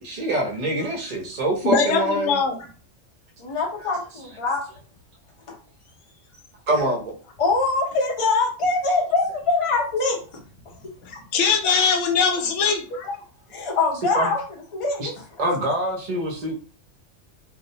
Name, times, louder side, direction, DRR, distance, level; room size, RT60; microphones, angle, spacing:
voice 1, 0.0-2.4 6.7-7.1 14.0-14.3 15.0-15.1 15.4-16.5, right 1 dB, 40° right, 0 dB, 0.6 m, -25 dB
voice 2, 1.6-2.6 11.0-12.8, left 5 dB, 75° left, 4 dB, 0.9 m, -21 dB
voice 3, 3.4-4.6 5.5-5.6 7.4-10.2 11.1-11.2 12.9-13.1 13.5-14.4 14.7-15.6, left 3 dB, 35° left, 0 dB, 0.5 m, -24 dB
2.3 x 2.0 x 2.7 m, 0.37 s
omnidirectional pair, 1.3 m